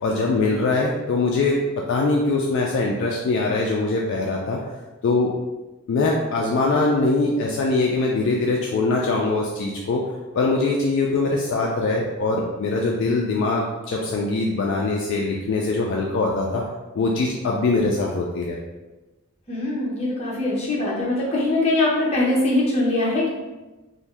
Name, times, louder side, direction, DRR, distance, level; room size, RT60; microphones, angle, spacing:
voice 1, 0.0-1.6 1.9-4.6 5.0-5.3 5.9-10.0 10.3-16.6 17.0-18.6, left 3 dB, 55° left, -1 dB, 0.3 m, -22 dB
voice 2, 19.5-23.3, left 2 dB, 30° left, -6 dB, 0.8 m, -22 dB
2.6 x 2.1 x 3.2 m, 1.1 s
head